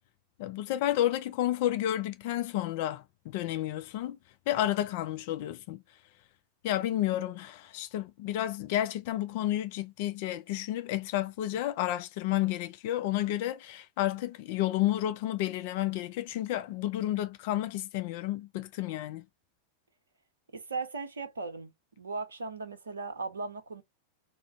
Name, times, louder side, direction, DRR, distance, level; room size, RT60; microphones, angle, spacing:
voice 1, 0.4-4.2 4.5-5.8 6.6-19.2, left 13 dB, 50° left, 0.3 m, -31 dB
voice 2, 20.5-21.7 22.0-23.8, right 4 dB, 70° right, 0.6 m, -37 dB
2.4 x 2.4 x 3.3 m
figure-of-eight pair, 90°, 0 cm